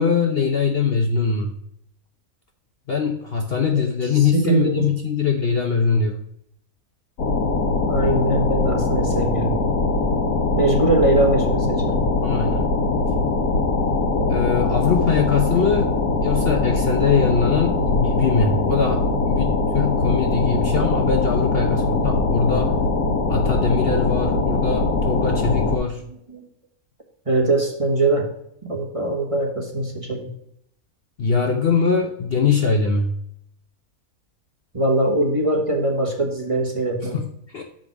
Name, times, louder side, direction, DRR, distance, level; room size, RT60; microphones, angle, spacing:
voice 1, 0.0-1.6 2.9-6.2 12.2-12.6 14.3-15.9 16.2-22.7 23.3-26.0 31.2-33.2 37.1-37.6, left 5 dB, 50° left, 3 dB, 0.9 m, -22 dB
voice 2, 3.7-4.9 7.9-9.6 10.5-12.0 17.6-18.0 19.4-19.5 20.8-20.9 24.3-24.4 24.7-24.8 26.3-26.4 27.3-28.3 28.7-30.3 34.7-37.2, right 2 dB, 25° right, 0 dB, 1.4 m, -22 dB
sound 1, 7.2-25.8, left 3 dB, 85° left, 1.6 m, -21 dB
6.2 x 5.1 x 5.9 m, 0.73 s
omnidirectional pair, 1.5 m